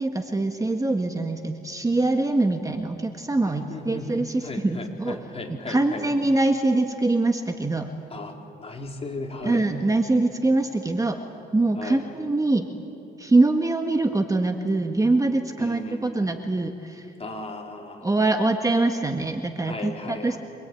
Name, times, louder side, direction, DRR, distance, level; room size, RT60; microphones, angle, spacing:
voice 1, 0.0-5.2 5.7-7.9 9.4-11.2 11.5-12.7 13.2-17.0 18.0-20.4, right 2 dB, 15° right, 5 dB, 1.6 m, -23 dB
voice 2, 3.4-6.1 8.1-9.7 11.8-12.0 15.6-16.5 17.2-18.1 19.6-20.4, left 2 dB, 30° left, 1 dB, 4.1 m, -36 dB
26.5 x 21.5 x 9.2 m, 2.7 s
cardioid pair, 90°, 20 cm